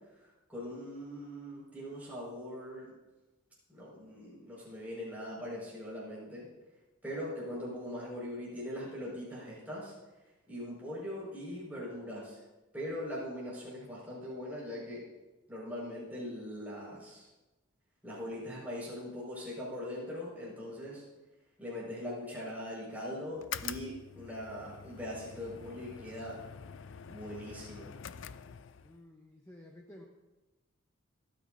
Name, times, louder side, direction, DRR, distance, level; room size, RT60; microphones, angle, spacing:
voice 1, 0.5-2.9 3.7-6.5 7.0-9.9 10.5-12.4 12.7-15.0 15.5-17.3 18.0-21.0 21.6-26.4 27.1-27.9, left 1 dB, 10° right, -6 dB, 5.4 m, -41 dB
sound 1, 23.3-29.0, left 8 dB, 60° left, 0.4 m, -45 dB
voice 2, 28.8-30.1, left 1 dB, 15° left, 0 dB, 0.9 m, -53 dB
27.5 x 9.7 x 2.7 m, 1.1 s
head